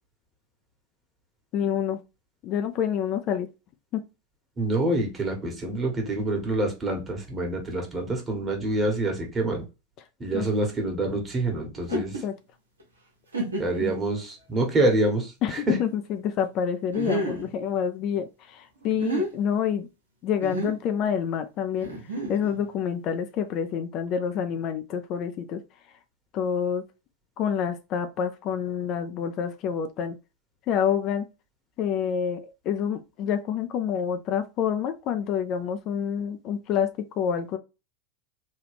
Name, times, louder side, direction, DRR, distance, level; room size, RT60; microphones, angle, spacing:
voice 1, 1.5-2.0 2.4-3.5 3.9-4.0 10.3-10.4 11.9-12.3 13.8-13.9 15.4-19.9 20.2-21.9 22.3-25.6 26.3-26.8 27.4-30.2 30.7-31.2 31.8-36.9 37.2-37.6, left 8 dB, 45° left, 0.4 m, -27 dB
voice 2, 4.6-9.6 10.2-12.2 13.6-15.8, right 2 dB, 25° right, 1.4 m, -26 dB
sound 1, 11.8-12.2 12.8-12.9 13.3-13.9 14.6-14.7 16.9-17.5 18.8-19.3 20.4-20.8 21.8-22.6, right 1 dB, 85° right, 1.1 m, -30 dB
3.1 x 2.3 x 3.3 m
figure-of-eight pair, 90°, 0 cm